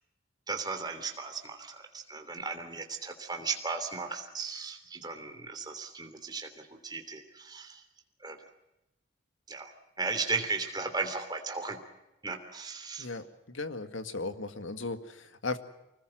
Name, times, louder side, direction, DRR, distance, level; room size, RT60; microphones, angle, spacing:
voice 1, 0.5-7.8 8.2-8.4 9.5-9.7 10.0-11.8 12.2-13.1, right 4 dB, 20° right, 4 dB, 3.1 m, -36 dB
voice 2, 13.0-15.6, left 3 dB, 80° left, 9 dB, 1.9 m, -37 dB
25.5 x 20.0 x 7.7 m, 0.94 s
head